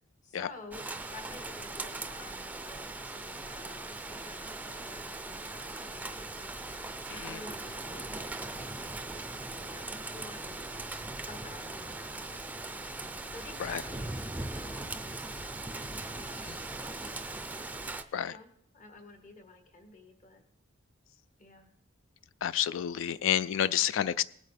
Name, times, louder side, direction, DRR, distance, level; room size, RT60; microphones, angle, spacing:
voice 1, 0.2-0.8 1.1-6.6 7.1-10.8 11.2-12.9 13.3-15.7 16.0-17.4 18.2-18.5 18.7-20.4 21.4-21.7, left 3 dB, 40° left, 4 dB, 1.6 m, -51 dB
Rain, 0.7-18.0, right 2 dB, 10° right, 0.4 m, -40 dB
voice 2, 22.4-24.2, left 10 dB, 70° left, 17 dB, 0.3 m, -29 dB
19.0 x 8.2 x 3.3 m, 0.68 s
head